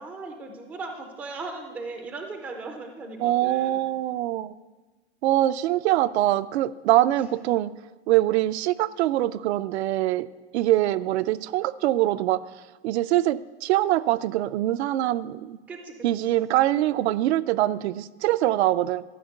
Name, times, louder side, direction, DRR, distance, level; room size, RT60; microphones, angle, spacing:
voice 1, 0.0-3.8 15.7-15.9, right 3 dB, 5° right, 4 dB, 0.3 m, -37 dB
voice 2, 3.2-4.5 5.2-7.7 8.1-10.3 10.5-12.4 12.8-15.6 16.0-19.0, right 14 dB, 70° right, 15 dB, 0.5 m, -23 dB
12.5 x 5.1 x 8.1 m, 1.2 s
supercardioid pair, 165°, 34 cm